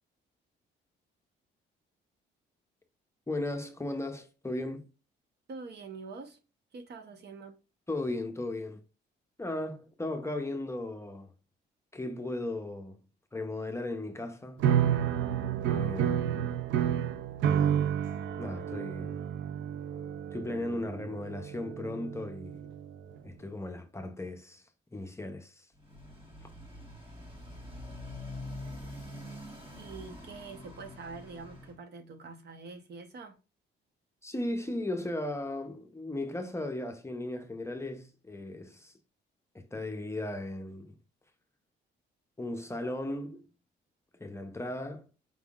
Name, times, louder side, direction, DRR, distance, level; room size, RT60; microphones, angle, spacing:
voice 1, 3.3-4.9 7.9-8.8 9.4-11.3 11.9-13.0 13.3-14.6 15.7-16.5 18.4-19.2 20.3-22.7 23.2-25.7 34.2-38.9 39.5-41.0 42.4-43.5 44.2-45.1, left 1 dB, 15° left, 0.6 m, -36 dB
voice 2, 5.5-6.4 6.7-7.6 29.8-33.4, right 4 dB, 55° right, 0.9 m, -45 dB
sound 1, 14.6-22.9, right 9 dB, 70° right, 0.5 m, -30 dB
Motorcycle, 25.7-31.8, left 1 dB, 25° right, 1.4 m, -45 dB
5.1 x 3.5 x 2.4 m
cardioid pair, 90°, 20 cm